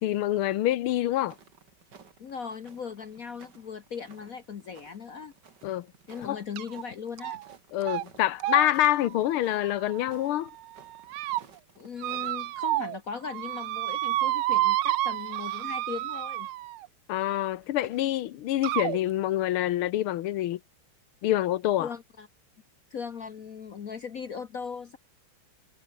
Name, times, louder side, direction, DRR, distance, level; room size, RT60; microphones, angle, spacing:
voice 1, 0.0-1.4 5.6-5.9 6.2-6.4 7.7-10.5 17.1-20.6 21.2-21.9, left 13 dB, 85° left, 1.7 m, -26 dB
sound 1, 0.9-12.4, right 6 dB, 55° right, 2.8 m, -56 dB
voice 2, 2.2-5.3 6.1-7.4 11.8-16.5 21.8-22.3 22.9-25.0, left 6 dB, 50° left, 1.2 m, -38 dB
sound 2, 6.6-6.8 7.2-7.5 7.8-8.0 8.4-10.3 10.8-11.4 12.0-13.0 13.2-16.9 17.8-17.9 18.6-19.0, right 16 dB, 85° right, 1.5 m, -30 dB
omnidirectional pair, 2.3 m